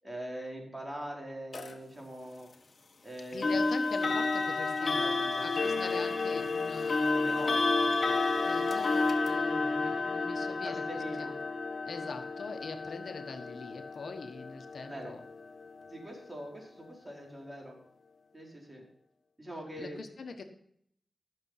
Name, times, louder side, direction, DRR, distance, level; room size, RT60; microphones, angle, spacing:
voice 1, 0.0-2.5 3.0-3.6 4.8-5.8 7.2-8.0 10.6-11.4 14.9-15.2 15.9-17.7 18.3-18.8 19.4-20.0, right 1 dB, 25° right, -1 dB, 4.6 m, -43 dB
sound 1, 1.5-1.7 3.4-16.2, left 3 dB, 70° left, 1.3 m, -31 dB
voice 2, 3.3-7.4 8.4-11.3 11.8-15.2 19.7-20.4, left 4 dB, 85° left, 6 dB, 1.3 m, -42 dB
13.5 x 6.9 x 5.8 m, 0.67 s
wide cardioid pair, 65°, 0 cm